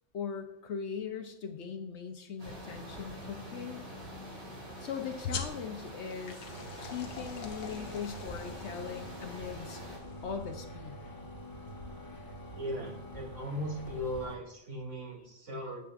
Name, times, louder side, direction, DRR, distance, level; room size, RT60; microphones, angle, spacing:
voice 1, 0.1-3.8 4.8-6.4 6.8-9.8 10.2-11.0, left 6 dB, 60° left, 5 dB, 0.9 m, -39 dB
sound 1, 2.4-10.0, equal, 90° right, 3.2 m, -46 dB
sound 2, 5.3-10.4, left 6 dB, 85° left, 1.3 m, -46 dB
sound 3, 6.5-14.4, equal, 15° left, 1.0 m, -46 dB
voice 2, 12.5-15.8, equal, 65° right, -5 dB, 2.9 m, -38 dB
9.3 x 7.6 x 2.5 m, 0.83 s
omnidirectional pair, 1.4 m